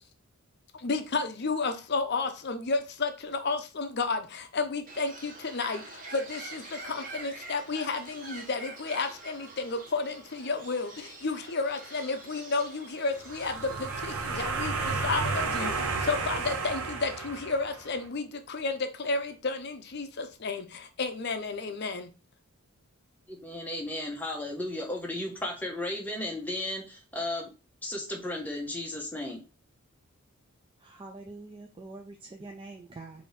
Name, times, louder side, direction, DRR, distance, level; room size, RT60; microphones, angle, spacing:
voice 1, 0.7-22.1, left 3 dB, 50° left, 7 dB, 0.6 m, -32 dB
Bird, 4.9-14.5, right 2 dB, 35° right, 0.9 m, -45 dB
sound 1, 13.2-18.0, right 4 dB, 75° right, 0.8 m, -32 dB
voice 2, 23.3-27.5 27.8-29.4, left 1 dB, 5° left, -1 dB, 0.8 m, -34 dB
voice 3, 30.8-33.3, right 2 dB, 20° right, 3 dB, 0.3 m, -45 dB
4.3 x 2.7 x 3.1 m, 0.32 s
head